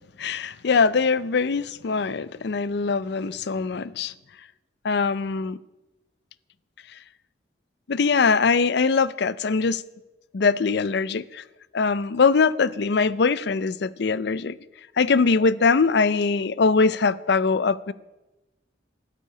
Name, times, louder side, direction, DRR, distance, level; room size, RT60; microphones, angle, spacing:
voice 1, 0.2-4.1 4.8-5.6 7.9-9.8 10.3-11.4 11.7-14.6 15.0-17.9, left 4 dB, 65° left, 0.5 m, -22 dB
13.5 x 8.4 x 9.9 m
head